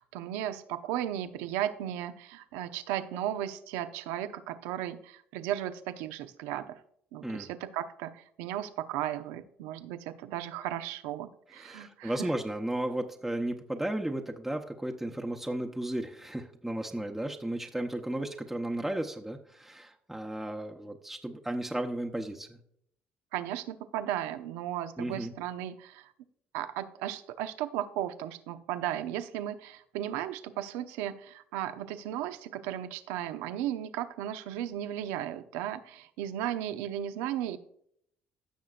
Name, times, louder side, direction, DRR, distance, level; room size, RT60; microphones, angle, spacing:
voice 1, 0.0-6.8 7.1-12.3 23.3-26.1 26.5-37.6, right 11 dB, 85° right, 10 dB, 0.7 m, -35 dB
voice 2, 11.5-22.6 25.0-25.3, right 1 dB, 5° right, 1 dB, 1.0 m, -34 dB
15.5 x 6.3 x 2.5 m, 0.69 s
supercardioid pair, 80°, 4 cm